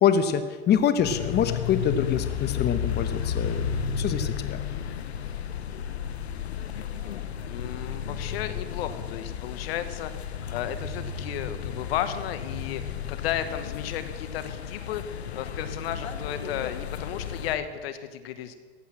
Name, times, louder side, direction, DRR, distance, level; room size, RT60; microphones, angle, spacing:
voice 1, 0.0-4.6, left 8 dB, 30° left, 10 dB, 1.0 m, -25 dB
sound 1, 1.0-17.6, left 8 dB, 90° left, 1.0 m, -33 dB
voice 2, 7.4-18.5, left 10 dB, 70° left, 11 dB, 1.2 m, -34 dB
15.5 x 8.5 x 7.6 m, 1.5 s
hypercardioid pair, 95°, 32 cm